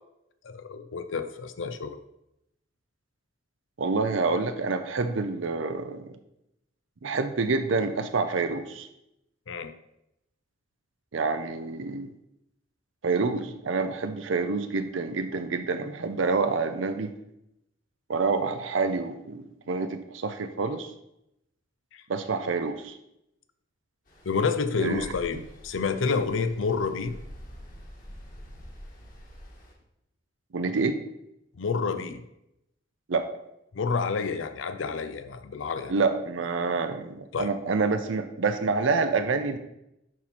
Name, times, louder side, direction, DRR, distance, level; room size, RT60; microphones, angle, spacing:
voice 1, 0.4-2.0 9.5-9.7 21.9-22.0 24.2-27.2 31.6-32.2 33.7-35.9 37.3-37.5, left 5 dB, 85° left, 10 dB, 0.5 m, -29 dB
voice 2, 3.8-6.1 7.0-8.9 11.1-12.1 13.0-17.1 18.1-20.9 22.1-23.0 24.8-25.0 30.5-31.0 33.1-33.3 35.9-39.6, right 4 dB, 90° right, 8 dB, 0.6 m, -27 dB
Stream, 24.1-29.7, equal, 45° left, 1.9 m, -46 dB
11.0 x 4.3 x 4.2 m, 0.84 s
head